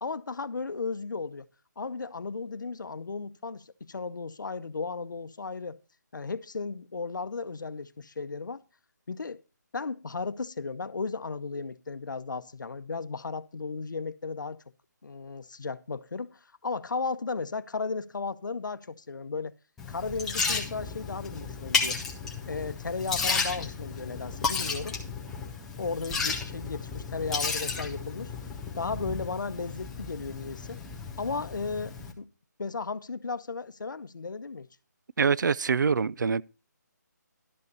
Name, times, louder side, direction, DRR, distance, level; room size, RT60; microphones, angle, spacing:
voice 1, 0.0-1.5 1.8-5.8 6.1-8.6 9.1-9.4 9.7-14.6 15.0-19.5 19.9-22.0 22.5-25.0 25.8-28.3 28.8-30.8 31.2-32.3 32.6-34.7, left 4 dB, 90° left, 0.7 m, -35 dB
Liquid, 19.8-32.1, left 4 dB, 5° left, 0.4 m, -33 dB
voice 2, 35.2-36.4, right 5 dB, 75° right, 0.4 m, -24 dB
12.0 x 5.5 x 5.3 m
hypercardioid pair, 170°, 10 cm